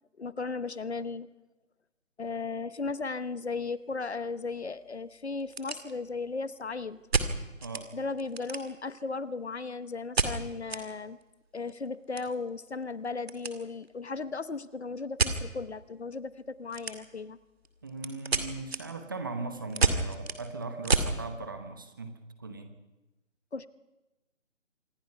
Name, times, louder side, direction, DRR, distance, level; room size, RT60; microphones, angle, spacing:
voice 1, 0.2-1.3 2.2-7.0 7.9-11.2 11.5-17.4 23.5-23.7, left 4 dB, 55° left, 15 dB, 1.0 m, -36 dB
sound 1, 3.1-3.3 3.6-3.7 4.3-4.4 4.7-4.8 5.3-6.3 7.1-7.9 8.2-9.0 10.2-10.8 11.2-11.3 11.6-13.6 13.8-14.1 15.2-15.4 16.7-17.3 17.6-21.2, right 4 dB, 50° right, 2.4 m, -30 dB
voice 2, 17.8-22.7, right 3 dB, 15° right, 7 dB, 1.0 m, -39 dB
26.5 x 20.5 x 5.7 m, 1.0 s
figure-of-eight pair, 155°, 39 cm